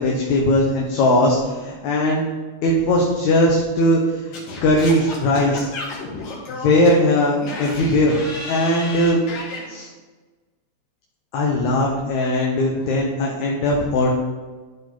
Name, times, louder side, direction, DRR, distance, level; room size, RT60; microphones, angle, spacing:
voice 1, 0.0-2.2 2.6-4.4 4.6-5.7 6.5-8.2 8.5-9.2 9.7-9.9 11.3-14.1, left 1 dB, 70° left, -2 dB, 2.3 m, -19 dB
Singing / Scratching (performance technique), 4.3-9.7, left 3 dB, 90° left, 3.7 m, -32 dB
13.5 x 4.7 x 4.0 m, 1.3 s
omnidirectional pair, 3.6 m